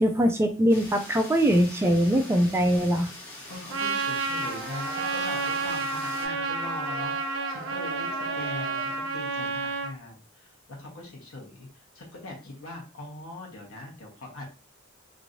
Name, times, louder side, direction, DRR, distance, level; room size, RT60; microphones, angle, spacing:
voice 1, 0.0-3.1, equal, 10° right, 5 dB, 0.3 m, -22 dB
sound 1, 0.7-6.3, left 1 dB, 10° left, 1.1 m, -43 dB
voice 2, 3.5-7.1 7.5-14.4, left 2 dB, 80° left, -1 dB, 1.1 m, -41 dB
Trumpet, 3.7-9.9, right 4 dB, 65° right, 0.5 m, -30 dB
sound 2, 4.3-9.2, right 1 dB, 50° right, 0.9 m, -42 dB
3.1 x 2.6 x 2.6 m, 0.32 s
head